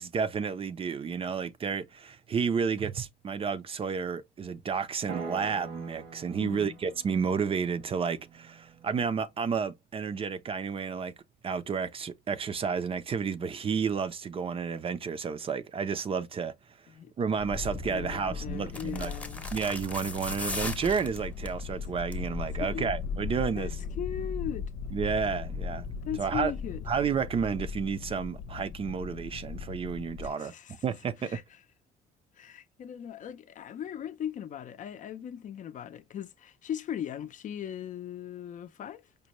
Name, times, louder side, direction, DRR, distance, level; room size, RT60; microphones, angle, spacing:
voice 1, 0.0-11.1 11.4-16.5 17.2-19.1 19.5-23.8 24.9-25.9 26.2-26.5 26.9-30.5 30.8-31.4, right 6 dB, 35° right, 0.5 m, -31 dB
sound 1, 5.1-9.2, right 4 dB, 85° right, 1.3 m, -45 dB
voice 2, 6.4-6.8 16.9-17.1 17.9-19.4 22.6-22.9 23.6-23.7 24.0-24.7 26.0-26.8 30.2-30.8 31.2-31.4 32.4-39.0, left 9 dB, 50° left, 0.5 m, -38 dB
sound 2, 17.4-30.3, left 5 dB, 80° left, 0.8 m, -38 dB
sound 3, 17.6-17.9 18.7-21.6 22.0-22.3 22.6-22.7, left 2 dB, 10° left, 0.8 m, -38 dB
5.2 x 2.2 x 2.9 m
cardioid pair, 110°, 17 cm